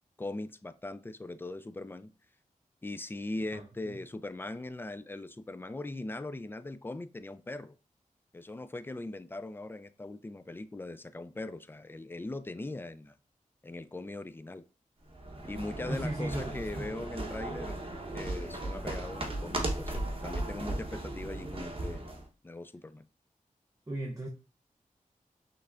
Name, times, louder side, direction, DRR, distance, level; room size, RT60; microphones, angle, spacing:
voice 1, 0.2-2.1 2.8-7.8 8.3-13.1 13.6-14.6 15.4-17.8 18.1-22.1 22.4-23.1, left 2 dB, 15° left, 0.3 m, -40 dB
voice 2, 3.5-4.0 15.9-16.9 23.9-24.3, right 1 dB, 20° right, 0.8 m, -37 dB
sound 1, 15.1-22.3, right 1 dB, 40° right, 1.1 m, -36 dB
5.5 x 3.3 x 2.5 m
wide cardioid pair, 80°, 14 cm